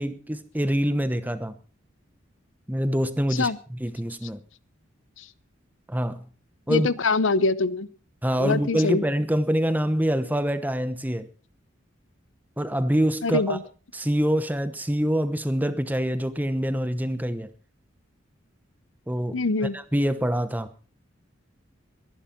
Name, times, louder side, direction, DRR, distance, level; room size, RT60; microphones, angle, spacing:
voice 1, 0.0-1.6 2.7-4.4 5.9-6.2 6.7-6.9 8.2-11.3 12.6-13.6 13.9-17.5 19.1-19.4 19.7-20.7, equal, 10° right, 1.0 m, -25 dB
voice 2, 6.7-7.9 8.4-9.0 13.2-13.6 19.3-19.8, left 3 dB, 80° left, 0.7 m, -23 dB
22.0 x 11.0 x 4.5 m
head